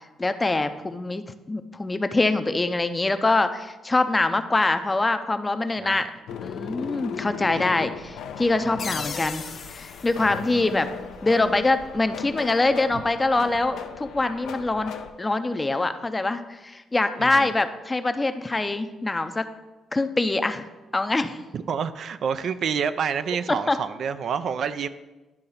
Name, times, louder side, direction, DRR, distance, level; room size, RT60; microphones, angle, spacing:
voice 1, 0.2-9.5 9.7-10.9 11.2-14.9 15.2-19.5 19.9-20.7 20.9-21.4 23.5-23.8, left 2 dB, 20° left, 10 dB, 0.6 m, -24 dB
sound 1, 6.3-15.1, left 7 dB, 80° left, 0.6 m, -37 dB
voice 2, 7.5-7.9 17.2-17.5 21.5-24.9, right 7 dB, 60° right, 12 dB, 0.4 m, -28 dB
sound 2, 8.8-11.4, left 5 dB, 50° left, 0.9 m, -38 dB
11.0 x 3.8 x 5.7 m, 1.1 s
cardioid pair, 90°, 0 cm